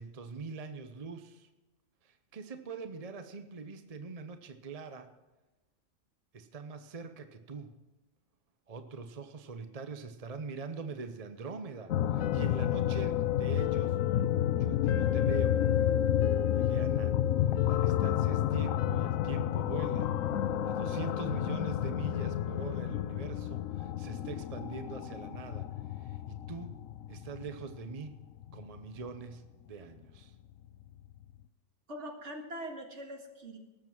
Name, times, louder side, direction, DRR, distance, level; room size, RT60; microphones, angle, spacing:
voice 1, 0.0-1.5 2.0-5.1 6.3-7.7 8.7-14.0 14.6-15.7 16.5-17.1 17.6-20.1 20.6-25.7 26.0-26.8 27.1-28.1 28.5-29.4 29.7-30.3, right 4 dB, 35° right, 8 dB, 0.8 m, -43 dB
sound 1, 11.9-29.2 30.8-30.9 31.2-31.3, left 11 dB, 80° left, 1.1 m, -30 dB
voice 2, 31.9-33.6, right 1 dB, 60° right, 2 dB, 2.2 m, -42 dB
18.5 x 7.3 x 6.0 m, 1.1 s
omnidirectional pair, 1.4 m